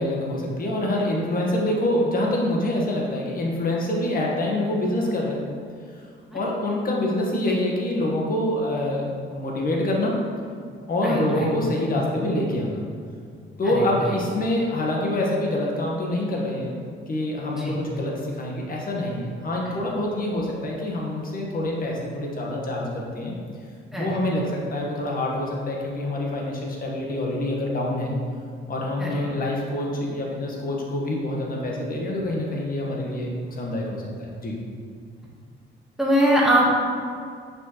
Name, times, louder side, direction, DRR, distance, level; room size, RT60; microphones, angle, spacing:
voice 1, 0.0-5.4 6.3-10.2 10.9-12.9 13.6-16.8 17.1-23.4 23.9-28.1 28.7-33.3 33.6-34.0 34.4-34.5, left 1 dB, 45° left, -2 dB, 1.3 m, -26 dB
voice 2, 11.0-11.5 13.6-13.8 17.6-17.8 23.9-24.1 29.0-29.2 36.0-36.7, equal, ahead, -5 dB, 1.4 m, -21 dB
6.0 x 5.6 x 3.0 m, 2.2 s
cardioid pair, 90°, 20 cm